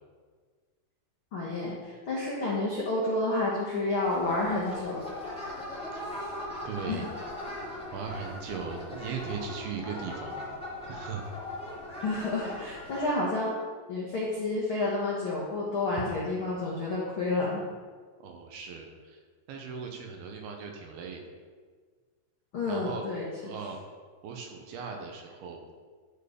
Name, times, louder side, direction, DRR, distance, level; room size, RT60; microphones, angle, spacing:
voice 1, 1.3-5.1 6.9-7.1 12.0-13.5 13.9-17.6 22.5-23.5, left 2 dB, 70° left, -6 dB, 1.2 m, -30 dB
sound 1, 4.0-13.0, left 1 dB, 5° left, 0.6 m, -39 dB
voice 2, 6.0-6.3 6.6-7.1 7.9-10.4 10.9-11.3 18.2-19.2 19.5-21.2 22.7-23.0 23.4-23.8 24.2-25.6, right 5 dB, 75° right, 2 dB, 2.6 m, -38 dB
13.5 x 4.6 x 5.1 m, 1.5 s
omnidirectional pair, 4.9 m